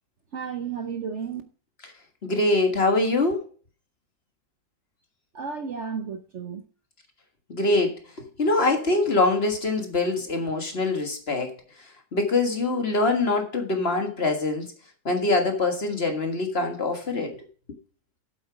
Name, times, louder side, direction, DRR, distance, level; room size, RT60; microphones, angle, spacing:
voice 1, 0.3-1.4 5.3-6.6, right 6 dB, 55° right, 1.0 m, -33 dB
voice 2, 2.2-3.5 7.5-11.5 12.1-14.7 15.1-17.5, left 2 dB, 40° left, 1.8 m, -24 dB
8.3 x 7.8 x 5.0 m
omnidirectional pair, 1.7 m